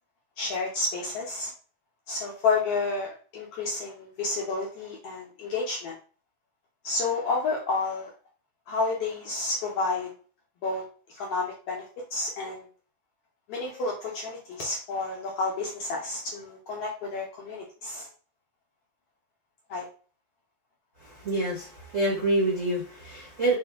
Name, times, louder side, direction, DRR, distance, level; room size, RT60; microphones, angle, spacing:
voice 1, 0.4-1.5 2.1-5.9 6.8-8.1 8.7-10.1 10.6-10.8 11.1-12.7 13.5-18.1 19.7-19.9, left 3 dB, 75° left, -1 dB, 1.4 m, -30 dB
voice 2, 21.0-23.5, right 1 dB, 85° right, -4 dB, 0.6 m, -27 dB
4.5 x 2.6 x 3.4 m, 0.40 s
omnidirectional pair, 3.4 m